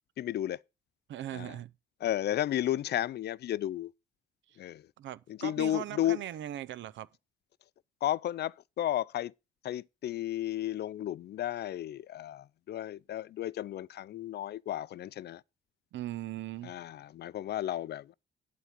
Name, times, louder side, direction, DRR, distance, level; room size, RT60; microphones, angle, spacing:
voice 1, 0.2-0.6 1.3-1.5 2.0-3.9 4.6-4.8 5.3-6.2 8.0-9.3 9.6-15.4 16.6-18.1, left 12 dB, 55° left, 0.4 m, -33 dB
voice 2, 1.1-1.7 4.5-4.6 5.0-7.1 15.9-16.8, right 13 dB, 70° right, 0.6 m, -39 dB
11.0 x 3.8 x 7.4 m
cardioid pair, 90°, 20 cm